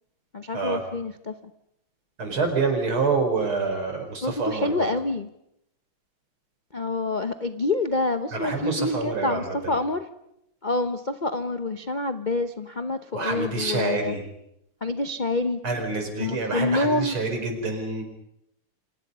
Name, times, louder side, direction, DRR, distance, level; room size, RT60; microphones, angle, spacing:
voice 1, 0.3-1.3 4.2-5.3 6.7-10.0 10.6-14.2 14.8-15.6 16.2-17.2, left 2 dB, 80° left, 9 dB, 0.4 m, -27 dB
voice 2, 2.2-4.9 8.3-9.8 13.1-14.2 15.6-18.0, right 4 dB, 70° right, 4 dB, 5.5 m, -27 dB
29.5 x 26.5 x 5.5 m, 0.80 s
omnidirectional pair, 2.4 m